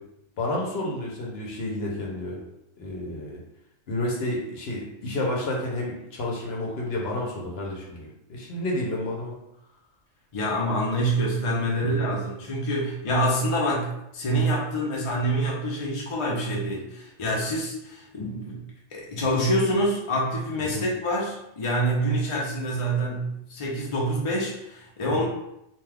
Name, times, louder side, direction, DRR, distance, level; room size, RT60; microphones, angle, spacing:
voice 1, 0.4-2.4 2.8-3.4 3.9-9.3 11.6-11.9 20.7-20.9 25.1-25.3, left 1 dB, 60° left, -2 dB, 0.9 m, -30 dB
voice 2, 10.3-18.6 18.9-25.3, right 1 dB, 40° left, -3 dB, 0.4 m, -26 dB
2.6 x 2.3 x 3.3 m, 0.82 s
omnidirectional pair, 1.4 m